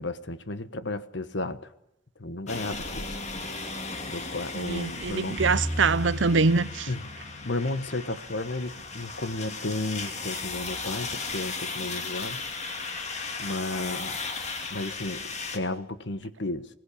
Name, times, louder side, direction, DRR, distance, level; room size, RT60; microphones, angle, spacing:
voice 1, 0.0-1.7 2.2-3.0 4.1-5.4 6.9-7.1 7.4-12.4 13.4-14.2 14.7-16.7, left 2 dB, 60° left, 1.3 m, -33 dB
sound 1, 2.5-15.6, left 4 dB, 35° left, 2.2 m, -36 dB
voice 2, 4.6-6.9, right 4 dB, 65° right, 0.7 m, -24 dB
sound 2, 5.4-9.1, equal, ahead, 5.5 m, -36 dB
21.5 x 18.0 x 8.5 m
head